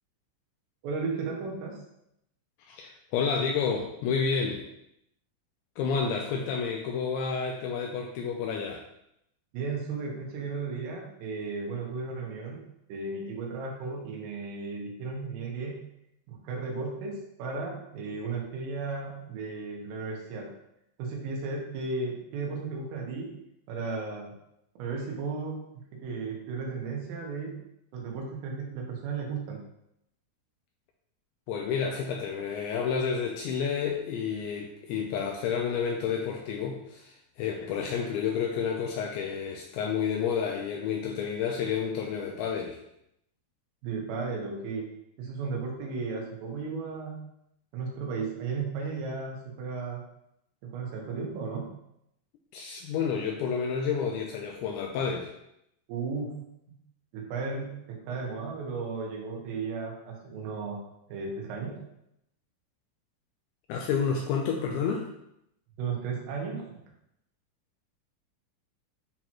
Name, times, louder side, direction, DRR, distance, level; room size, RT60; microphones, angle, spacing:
voice 1, 0.8-1.8 9.5-12.6 12.9-15.7 16.3-20.5 21.0-23.3 23.7-24.3 24.8-25.6 25.9-27.6 27.9-29.6 43.8-44.9 45.2-47.2 47.7-50.0 50.6-51.7 55.9-56.4 57.1-60.8 61.1-61.8 65.8-66.7, right 4 dB, 90° right, -1 dB, 4.1 m, -34 dB
voice 2, 2.7-4.6 5.8-8.8 31.5-42.8 52.5-55.3 63.7-65.1, left 6 dB, 80° left, 1 dB, 2.7 m, -30 dB
11.0 x 4.4 x 3.0 m, 0.79 s
omnidirectional pair, 5.7 m